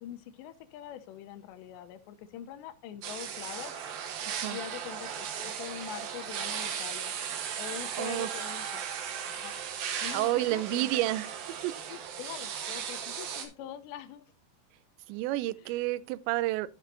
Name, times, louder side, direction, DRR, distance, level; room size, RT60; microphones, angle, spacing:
voice 1, 0.0-3.8 4.5-7.1 7.6-8.8 9.4-9.5 10.0-10.9 11.9-14.3 15.6-15.8, left 11 dB, 80° left, 2.9 m, -43 dB
sound 1, 3.0-13.5, right 8 dB, 65° right, 2.7 m, -37 dB
voice 2, 4.3-4.6 8.0-8.3 10.1-11.3 11.6-11.7 15.1-16.7, right 16 dB, 90° right, 2.8 m, -30 dB
14.0 x 6.3 x 2.6 m
omnidirectional pair, 5.0 m